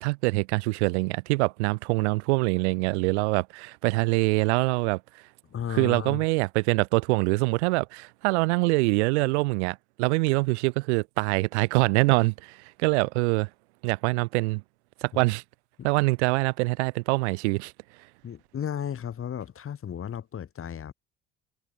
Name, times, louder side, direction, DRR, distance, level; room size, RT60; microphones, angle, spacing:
voice 1, 0.0-5.0 5.7-13.5 13.8-14.6 15.0-15.4 15.8-17.7, right 26 dB, 80° right, 0.6 m, -24 dB
voice 2, 5.5-6.2 15.1-15.2 15.8-15.9 18.2-20.9, left 9 dB, 40° left, 1.7 m, -34 dB
hypercardioid pair, 65°, 34 cm